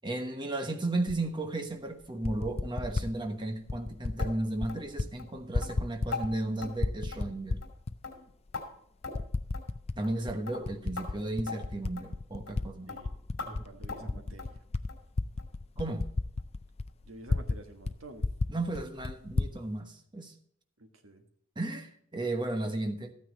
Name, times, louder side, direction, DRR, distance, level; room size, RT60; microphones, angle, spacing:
voice 1, 0.0-7.6 10.0-12.9 13.4-13.6 14.0-14.2 15.8-16.1 18.5-20.3 21.6-23.1, right 2 dB, 20° right, 1.1 m, -34 dB
Typing, 1.1-1.2 2.0-3.1 3.7-4.3 4.6-5.1 5.4-6.5 6.8-8.0 8.5-8.6 9.1-10.0 10.3-12.7 13.0-17.6 17.8-17.9 18.2-19.5, left 3 dB, 30° left, 0.4 m, -32 dB
sound 1, 4.2-4.3 4.7-4.9 5.2-5.3 5.6-5.8 6.1-6.3 6.6-6.8 7.1-7.4 7.6-7.8 8.0-8.7 9.0-9.3 9.5-9.7 10.0-10.2 10.5-10.6 11.0-11.1 11.5-11.6 12.0-12.1 12.5-12.6 12.9-13.0 13.4-13.5 13.9-14.1 14.4-14.6 14.9-15.1 15.4-15.5 15.9-16.0 16.4-16.5, left 4 dB, 60° left, 2.7 m, -39 dB
voice 2, 13.4-14.6 17.0-18.2 20.8-21.2, right 1 dB, 70° right, 1.6 m, -49 dB
13.5 x 9.4 x 4.1 m
head